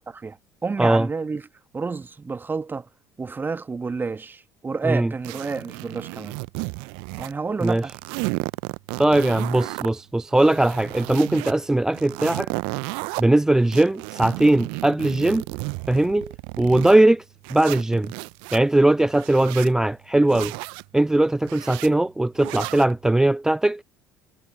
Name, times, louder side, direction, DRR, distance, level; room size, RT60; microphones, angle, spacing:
voice 1, 0.6-1.4 1.7-2.9 3.2-6.4 7.2-7.9, right 4 dB, 20° right, 1.4 m, -29 dB
sound 1, 5.2-7.3 7.6-9.9 10.3-11.5 11.9-13.2 13.7-17.0 17.4-18.6 19.1-19.7 20.3-20.8 21.4-21.9 22.4-22.9, right 32 dB, 65° right, 0.8 m, -33 dB
voice 2, 7.6-7.9 9.0-12.5 13.2-15.4 15.9-17.2 17.5-18.1 18.5-20.5 20.9-23.8, right 1 dB, 5° right, 0.3 m, -20 dB
figure-of-eight pair, 60°, 9 cm